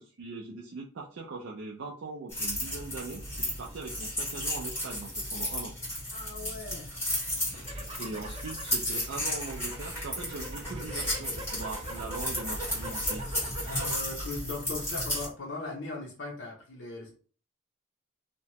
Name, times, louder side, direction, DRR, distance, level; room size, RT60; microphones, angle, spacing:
voice 1, 0.0-5.7 7.5-13.3, right 3 dB, 65° right, -2 dB, 0.4 m, -41 dB
sound 1, 2.3-15.3, left 1 dB, 15° left, 1.5 m, -34 dB
voice 2, 6.1-6.9 13.6-17.2, left 3 dB, 65° left, -3 dB, 0.7 m, -39 dB
sound 2, 7.4-14.1 14.5-15.0, right 1 dB, 25° right, 0.7 m, -42 dB
2.8 x 2.2 x 2.8 m, 0.39 s
head